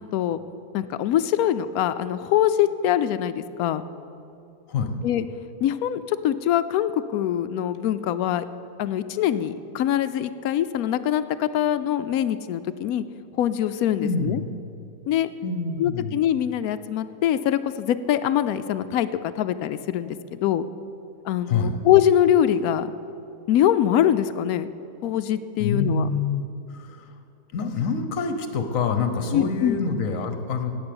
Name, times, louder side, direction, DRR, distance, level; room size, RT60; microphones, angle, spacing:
voice 1, 0.7-3.8 5.0-5.2 5.6-8.5 8.8-13.0 13.4-14.4 15.1-15.3 15.8-20.6 21.2-22.9 23.5-24.7 25.0-26.1 29.3-29.8, left 11 dB, 70° left, 12 dB, 1.0 m, -23 dB
voice 2, 14.0-14.5 15.4-16.1 21.5-21.8 25.6-26.4 26.7-27.1 27.5-30.7, left 4 dB, 55° left, 7 dB, 1.4 m, -26 dB
17.0 x 6.2 x 8.6 m, 2.7 s
omnidirectional pair, 1.7 m